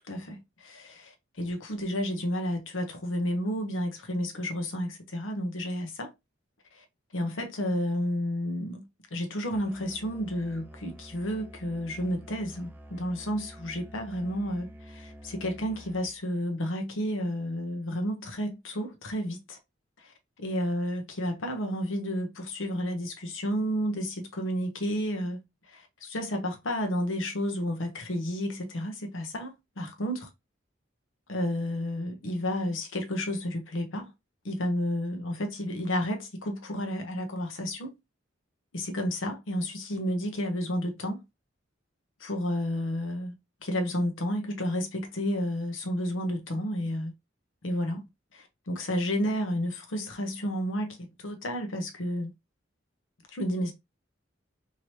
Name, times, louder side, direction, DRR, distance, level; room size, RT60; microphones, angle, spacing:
voice 1, 0.1-6.1 6.7-6.8 7.1-8.8 9.1-19.6 20.0-25.4 25.6-30.3 31.3-34.1 34.4-37.9 38.7-41.2 42.2-43.3 43.6-47.1 47.6-48.0 48.3-52.3 53.3-53.7, equal, 85° left, 0.8 m, -31 dB
Musical instrument, 9.5-16.3, right 1 dB, 10° right, 0.4 m, -48 dB
3.1 x 2.8 x 2.8 m
head